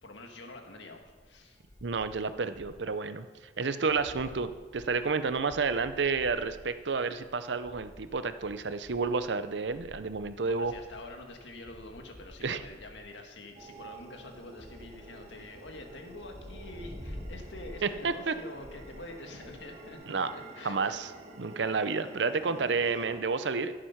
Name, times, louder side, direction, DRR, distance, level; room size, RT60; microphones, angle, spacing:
voice 1, 0.0-1.6 4.1-4.3 10.5-21.0, left 2 dB, 85° left, 3 dB, 1.8 m, -46 dB
sound 1, 1.0-2.9 3.2-3.3 3.6-19.9, equal, 20° left, 2.2 m, -50 dB
voice 2, 1.8-3.3 3.6-10.7 12.4-12.6 17.8-18.3 20.1-20.3 20.6-21.1 21.4-23.7, right 4 dB, 80° right, 11 dB, 0.7 m, -30 dB
sound 2, 13.5-23.2, right 2 dB, 35° right, 1.6 m, -50 dB
14.5 x 7.5 x 5.8 m, 1.4 s
head